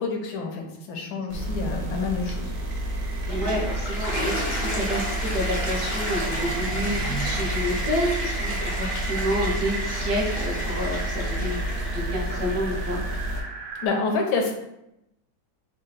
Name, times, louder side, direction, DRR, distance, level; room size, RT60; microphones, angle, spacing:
voice 1, 0.0-2.5 13.8-14.5, left 4 dB, 75° left, 2 dB, 1.4 m, -28 dB
sound 1, 1.3-13.4, right 1 dB, 85° right, 0.6 m, -30 dB
sound 2, 2.0-13.9, right 3 dB, 65° right, 1.0 m, -36 dB
Toilet flush, 3.1-13.4, equal, 50° left, 0.7 m, -34 dB
voice 2, 3.2-13.0, equal, 40° right, -4 dB, 0.7 m, -29 dB
3.8 x 2.3 x 3.9 m, 0.85 s
omnidirectional pair, 2.2 m